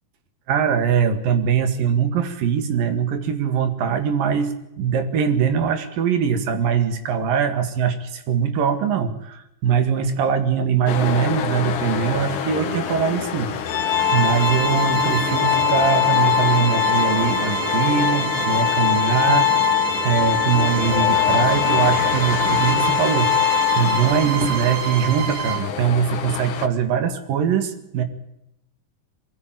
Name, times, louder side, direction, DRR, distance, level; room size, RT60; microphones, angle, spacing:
voice 1, 0.5-13.5 14.1-19.5 20.0-28.0, right 7 dB, 80° right, 9 dB, 3.6 m, -22 dB
sound 1, 10.9-26.7, left 8 dB, 65° left, 2.9 m, -29 dB
Organ, 13.7-24.4, left 12 dB, 85° left, 3.2 m, -22 dB
Bowed string instrument, 13.9-25.7, right 10 dB, 60° right, 2.8 m, -28 dB
22.5 x 15.5 x 8.8 m, 0.84 s
omnidirectional pair, 4.0 m